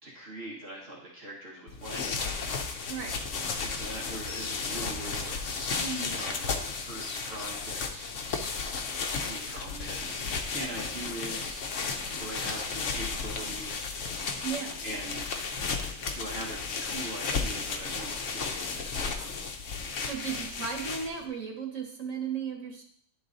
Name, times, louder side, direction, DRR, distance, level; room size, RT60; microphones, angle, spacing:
voice 1, 0.0-2.1 3.6-8.1 9.2-11.7 12.2-13.9 14.8-15.4 16.1-19.3, right 1 dB, 55° right, -6 dB, 1.8 m, -41 dB
sound 1, 1.7-21.3, left 4 dB, 80° left, 1.2 m, -34 dB
sound 2, 4.3-4.8 5.1-5.4 6.0-6.5 7.0-7.9 8.3-8.5, left 3 dB, 25° left, 0.6 m, -45 dB
voice 2, 14.4-14.8 20.0-22.8, right 6 dB, 85° right, 1 dB, 1.8 m, -35 dB
11.0 x 3.9 x 3.9 m, 0.65 s
omnidirectional pair, 1.3 m